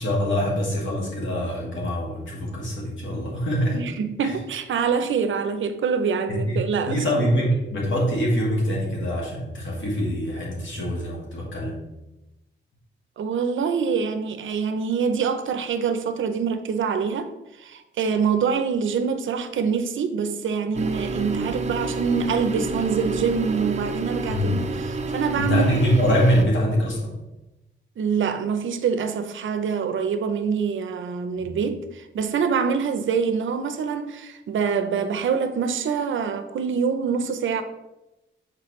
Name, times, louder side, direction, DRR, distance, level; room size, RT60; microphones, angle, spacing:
voice 1, 0.0-3.8 4.2-4.3 6.3-11.7 24.3-24.6 25.4-27.2 31.4-31.5, equal, 70° left, 2.0 m, -24 dB
voice 2, 3.7-7.0 13.2-17.3 17.6-24.7 25.1-25.7 28.0-37.6, right 6 dB, 75° right, 0.6 m, -25 dB
sound 1, 20.7-26.4, right 3 dB, 35° right, 0.6 m, -29 dB
6.7 x 4.7 x 3.1 m
wide cardioid pair, 140°, 20 cm